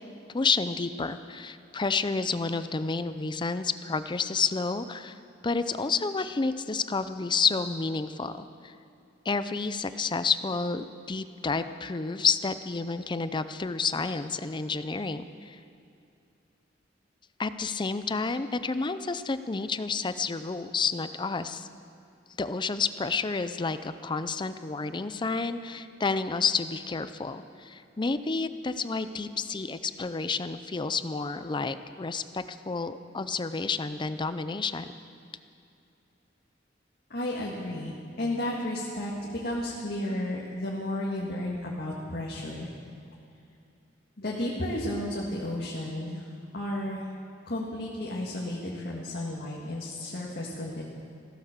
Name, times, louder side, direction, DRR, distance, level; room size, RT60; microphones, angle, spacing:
voice 1, 0.3-5.2 5.4-8.7 9.3-15.6 17.4-21.7 22.4-34.9, left 4 dB, 25° left, 12 dB, 0.5 m, -30 dB
voice 2, 37.1-42.7 44.2-46.3 46.5-47.1 47.5-50.8, left 1 dB, 55° left, -4 dB, 1.9 m, -33 dB
16.0 x 13.5 x 6.7 m, 2.6 s
head